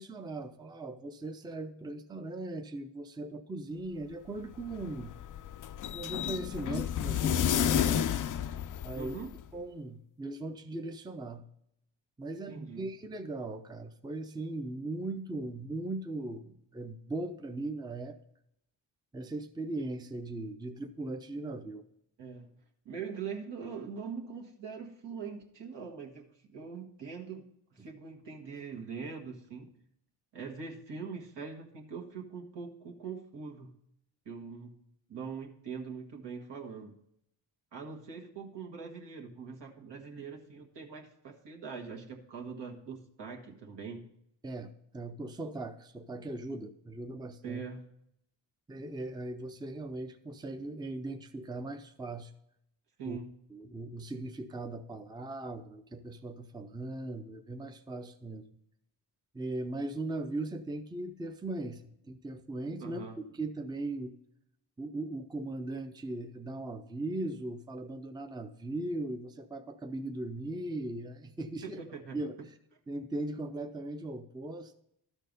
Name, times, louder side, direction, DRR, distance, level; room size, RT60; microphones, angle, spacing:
voice 1, 0.0-5.1 5.9-8.1 8.8-9.1 9.5-11.5 12.2-18.2 19.1-21.9 27.8-27.9 44.4-47.6 48.7-52.3 53.0-53.2 53.5-58.5 59.3-64.1 64.8-71.8 72.1-72.4 72.9-74.7, right 2 dB, 10° right, 8 dB, 0.6 m, -39 dB
sound 1, 4.4-9.4, left 9 dB, 45° left, 0.4 m, -31 dB
voice 2, 8.9-9.3 12.5-12.8 22.2-22.5 22.8-27.5 27.8-29.7 30.3-33.7 34.2-34.7 35.1-36.9 37.7-44.0 47.4-47.8 53.0-53.3 62.8-63.2 71.6-72.2, right 5 dB, 70° right, 1 dB, 1.5 m, -42 dB
12.5 x 4.5 x 5.2 m, 0.75 s
supercardioid pair, 55°, 44 cm